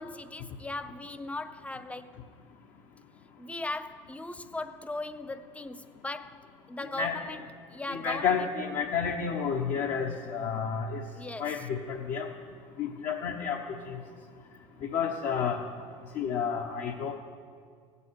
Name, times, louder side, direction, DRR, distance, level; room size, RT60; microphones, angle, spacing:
voice 1, 0.0-2.1 3.4-8.5 11.1-11.7, left 2 dB, 10° left, 12 dB, 0.5 m, -39 dB
voice 2, 7.0-7.4 7.9-11.0 11.4-12.3 12.8-13.6 13.9-14.0 14.9-15.6 16.1-17.1, left 6 dB, 55° left, 2 dB, 1.0 m, -30 dB
16.0 x 8.4 x 4.7 m, 2.1 s
supercardioid pair, 95°, 16 cm